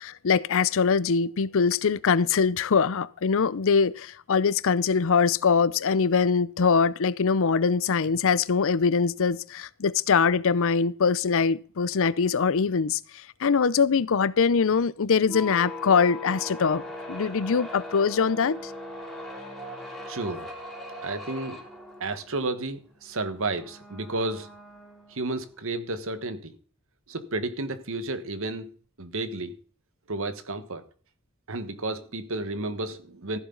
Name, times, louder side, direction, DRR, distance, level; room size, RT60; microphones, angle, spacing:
voice 1, 0.0-16.8 17.1-18.7, left 5 dB, 65° left, 0.6 m, -23 dB
sound 1, 15.2-25.5, left 1 dB, ahead, 3.3 m, -40 dB
voice 2, 20.1-20.5 21.0-21.6 22.0-24.5 25.1-26.5 27.1-28.7 29.0-29.5 30.1-30.8 31.5-33.4, right 2 dB, 65° right, 1.4 m, -32 dB
14.5 x 11.0 x 3.9 m
head